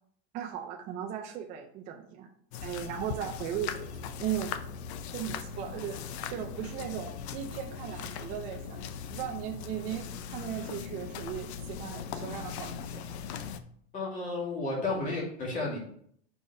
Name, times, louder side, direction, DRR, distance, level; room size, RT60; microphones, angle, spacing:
voice 1, 0.3-2.3 2.6-4.5 5.1-6.0 6.3-8.8 9.1-12.8, right 10 dB, 25° right, 2 dB, 0.4 m, -37 dB
sound 1, 2.5-13.6, left 7 dB, 80° left, 0.7 m, -39 dB
voice 2, 13.9-15.8, left 2 dB, 25° left, -4 dB, 2.3 m, -32 dB
4.8 x 4.5 x 5.2 m, 0.63 s
supercardioid pair, 165°, 32 cm